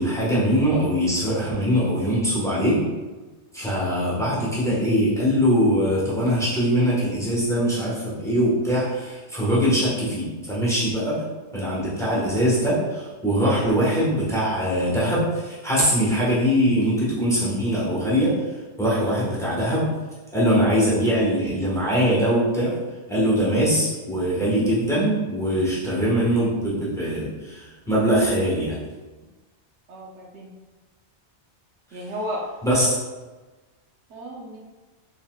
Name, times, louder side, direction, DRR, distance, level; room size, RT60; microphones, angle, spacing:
voice 1, 0.0-2.8 3.5-11.2 11.5-18.3 18.8-19.9 20.3-22.7 23.1-28.8 32.6-33.0, equal, 5° left, -8 dB, 1.2 m, -22 dB
voice 2, 29.9-30.5 31.9-32.5 34.1-34.6, equal, 75° right, -2 dB, 1.0 m, -33 dB
4.2 x 3.8 x 2.3 m, 1.2 s
omnidirectional pair, 1.2 m